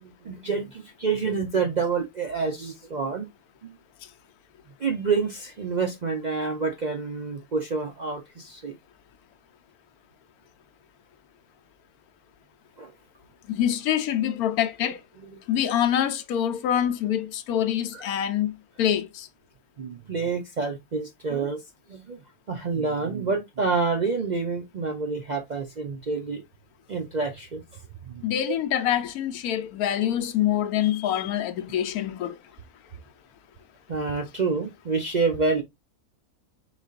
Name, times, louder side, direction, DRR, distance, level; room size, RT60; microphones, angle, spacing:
voice 1, 0.0-3.3 3.6-3.7 4.8-8.8 12.8-12.9 17.9-18.1 19.8-21.6 21.9-22.2 22.5-26.4 26.9-27.6 28.1-28.2 33.9-35.6, right 4 dB, 55° right, 0.5 m, -28 dB
voice 2, 13.5-15.0 15.5-18.5 18.8-19.3 28.2-32.3, left 10 dB, 85° left, 1.1 m, -25 dB
5.1 x 4.0 x 2.4 m
omnidirectional pair, 1.6 m